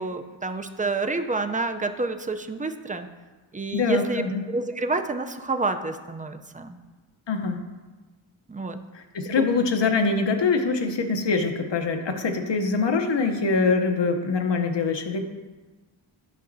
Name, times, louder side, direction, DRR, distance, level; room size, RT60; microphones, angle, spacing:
voice 1, 0.0-3.1 3.5-6.8 8.5-8.8 9.4-9.5, right 3 dB, 20° right, 7 dB, 0.4 m, -28 dB
voice 2, 3.7-4.4 7.3-7.6 8.9-15.2, left 4 dB, 65° left, 5 dB, 0.8 m, -24 dB
11.0 x 5.9 x 2.6 m, 1.3 s
wide cardioid pair, 65°, 47 cm